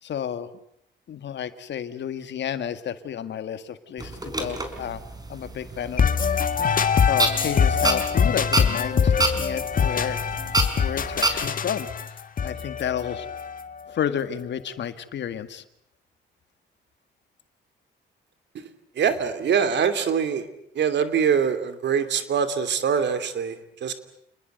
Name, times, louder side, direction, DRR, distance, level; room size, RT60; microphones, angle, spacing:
voice 1, 0.0-0.5 1.1-5.0 5.3-6.1 7.1-10.3 10.8-13.3 13.9-15.6, left 9 dB, 65° left, 11 dB, 1.9 m, -31 dB
sound 1, 4.0-11.5, right 2 dB, 20° right, 5.0 m, -29 dB
sound 2, 6.0-13.8, left 6 dB, 45° left, 1.7 m, -24 dB
voice 2, 18.9-20.5 20.7-23.9, right 7 dB, 65° right, 11 dB, 2.9 m, -24 dB
29.5 x 20.5 x 8.0 m, 0.75 s
cardioid pair, 90°, 20 cm